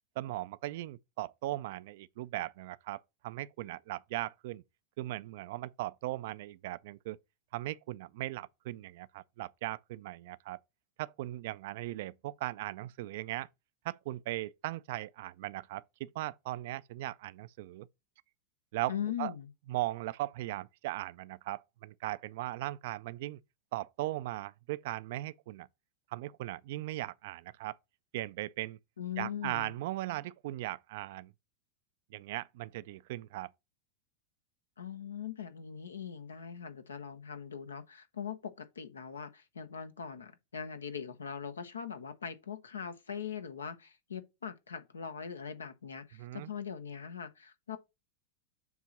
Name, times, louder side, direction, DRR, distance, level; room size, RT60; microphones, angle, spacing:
voice 1, 0.2-4.6 5.0-7.2 7.5-10.6 11.0-13.5 13.8-17.9 18.7-19.3 19.7-23.4 23.7-25.7 26.1-27.8 28.1-28.8 29.2-31.3 32.1-33.5 46.2-46.5, right 16 dB, 60° right, 0.3 m, -38 dB
voice 2, 18.9-19.5 29.0-29.8 34.8-47.8, left 8 dB, 80° left, 0.9 m, -41 dB
7.1 x 2.9 x 5.9 m
figure-of-eight pair, 90°, 0 cm